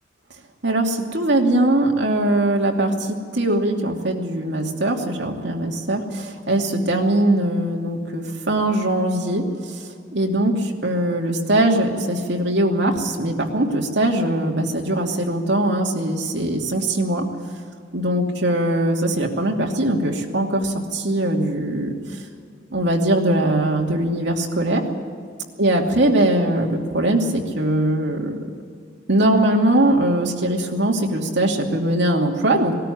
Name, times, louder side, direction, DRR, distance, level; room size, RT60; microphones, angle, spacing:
voice 1, 0.6-9.7 10.1-17.2 17.9-22.2 22.7-24.8 25.6-28.3 29.1-32.7, right 1 dB, 65° right, 0 dB, 2.7 m, -21 dB
20.0 x 13.5 x 9.9 m, 2.2 s
head